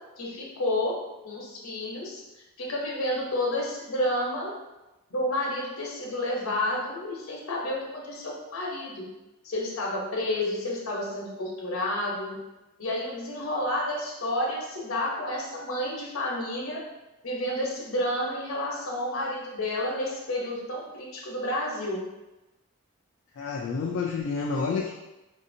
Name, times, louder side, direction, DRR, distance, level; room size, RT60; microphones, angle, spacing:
voice 1, 0.2-0.9 1.2-2.2 2.6-4.5 5.1-9.0 9.4-12.4 12.8-16.8 17.2-22.0, left 1 dB, 80° left, -2 dB, 0.9 m, -30 dB
voice 2, 23.4-24.9, left 4 dB, 65° left, -1 dB, 0.3 m, -29 dB
4.1 x 2.7 x 2.6 m, 1.0 s
head